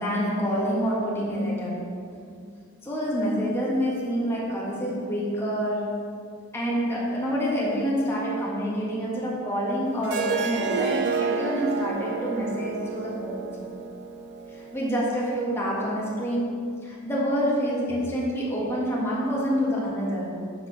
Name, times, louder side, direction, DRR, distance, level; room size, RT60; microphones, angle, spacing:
voice 1, 0.0-2.0 2.8-6.1 6.5-13.5 14.5-20.4, equal, 10° left, -6 dB, 1.6 m, -27 dB
Harp, 10.0-15.2, right 5 dB, 55° right, 0.5 m, -30 dB
6.0 x 5.5 x 5.9 m, 2.3 s
head